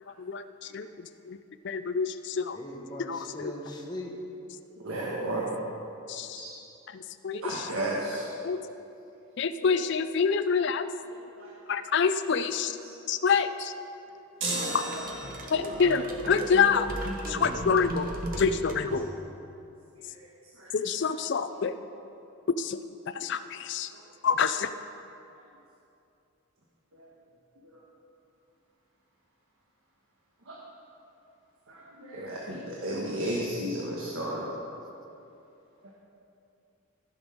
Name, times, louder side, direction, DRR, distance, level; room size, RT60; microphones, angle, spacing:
voice 1, 0.2-0.9 1.3-1.4 1.6-2.6 3.0-3.5 6.1-6.4 6.9-7.4 8.4-8.6 9.4-10.9 11.7-12.8 13.1-13.7 15.5-16.9 17.3-18.1 18.4-19.1 20.7-21.7 22.6-22.8 23.2-23.9 24.2-24.7, left 6 dB, 50° left, 11 dB, 0.4 m, -27 dB
voice 2, 2.5-4.1, left 1 dB, 20° left, -1 dB, 1.0 m, -40 dB
voice 3, 4.8-5.5 6.3-6.5 7.4-8.3 9.6-9.7 11.4-11.9 12.8-12.9 14.1-14.2 14.5-15.0 15.3-15.6 19.9-20.3 20.5-20.7 21.0-21.4 23.9-24.0 25.3-25.4 26.9-27.1 27.6-27.8 30.4-30.6 31.7-34.5 35.8-35.9, right 1 dB, 75° right, -4 dB, 1.3 m, -35 dB
sound 1, 14.4-15.7, right 2 dB, 55° right, 1.7 m, -33 dB
sound 2, 14.6-19.5, equal, 40° right, 1.0 m, -36 dB
14.5 x 6.2 x 5.1 m, 2.8 s
head